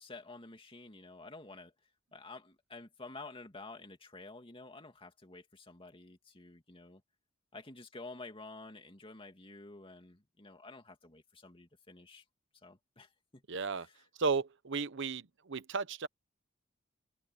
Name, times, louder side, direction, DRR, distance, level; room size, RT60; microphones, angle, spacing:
voice 1, 0.0-7.0 7.5-12.2 12.6-13.4 13.8-14.0, left 3 dB, 25° left, 2.5 m, -50 dB
voice 2, 13.5-13.9 14.2-16.1, right 4 dB, 65° right, 1.0 m, -34 dB
open air
head